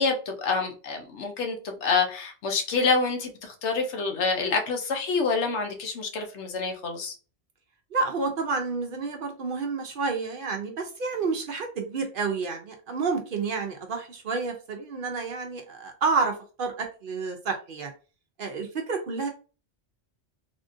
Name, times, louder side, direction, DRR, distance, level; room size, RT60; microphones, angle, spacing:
voice 1, 0.0-7.1, left 4 dB, 75° left, 1.0 m, -27 dB
voice 2, 7.9-17.9 18.4-19.3, right 4 dB, 55° right, 0.7 m, -29 dB
3.5 x 2.4 x 2.5 m
omnidirectional pair, 1.2 m